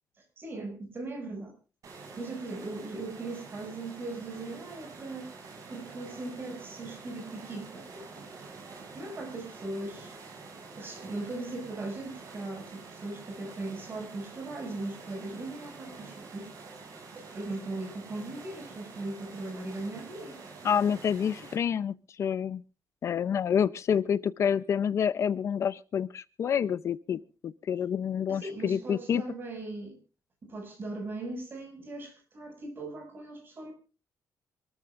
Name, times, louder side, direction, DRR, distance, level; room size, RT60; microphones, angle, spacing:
voice 1, 0.4-1.5 1.9-5.3 5.7-8.3 8.9-10.2 10.8-16.5 17.1-20.4 28.3-30.0 30.4-33.7, right 2 dB, 35° right, 5 dB, 6.6 m, -39 dB
sound 1, 1.8-21.5, right 4 dB, 55° right, 7.6 m, -47 dB
voice 2, 20.6-22.6 23.0-29.2, left 8 dB, 45° left, 15 dB, 0.6 m, -28 dB
26.5 x 14.0 x 2.5 m, 0.34 s
cardioid pair, 160°, 7 cm